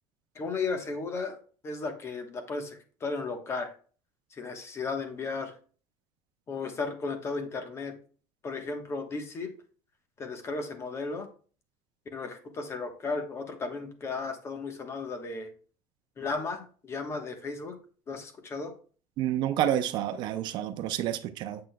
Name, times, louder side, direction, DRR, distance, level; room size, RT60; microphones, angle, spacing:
voice 1, 0.3-1.4 1.6-3.7 4.3-5.5 6.5-7.9 8.4-9.5 10.2-11.3 12.1-15.5 16.2-17.8 18.1-18.7, left 4 dB, 25° left, 1.2 m, -35 dB
voice 2, 19.2-21.6, right 11 dB, 50° right, 0.5 m, -29 dB
7.7 x 6.0 x 2.3 m
cardioid pair, 135°, 10 cm